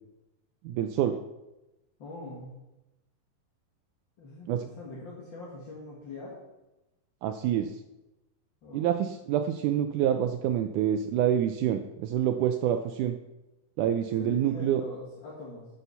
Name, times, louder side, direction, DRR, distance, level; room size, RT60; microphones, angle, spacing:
voice 1, 0.6-1.2 4.5-4.6 7.2-7.7 8.7-13.2 13.8-14.8, right 10 dB, 80° right, 7 dB, 1.8 m, -27 dB
voice 2, 2.0-2.6 4.2-6.4 8.6-9.0 14.2-15.7, left 3 dB, 45° left, -5 dB, 1.8 m, -42 dB
9.9 x 7.0 x 5.7 m, 0.98 s
omnidirectional pair, 4.0 m